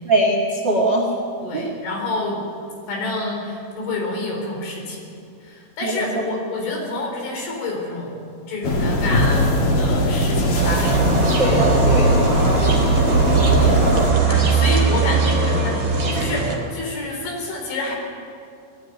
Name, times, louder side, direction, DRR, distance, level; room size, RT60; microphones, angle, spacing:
voice 1, 0.0-1.1 1.5-1.7 5.8-6.2 11.4-12.5 13.0-13.1, right 1 dB, 75° right, 1 dB, 1.0 m, -22 dB
voice 2, 1.4-2.4 2.9-5.0 5.4-8.2 8.5-9.5 9.8-11.5 13.4-18.0, left 2 dB, 80° left, 0 dB, 6.6 m, -28 dB
sound 1, 8.6-14.1, equal, 45° left, 2.1 m, -20 dB
sound 2, 10.6-16.6, right 4 dB, 35° right, 4.0 m, -19 dB
sound 3, 11.2-14.0, equal, 60° left, 4.0 m, -36 dB
19.5 x 14.5 x 9.5 m, 2.5 s
omnidirectional pair, 5.4 m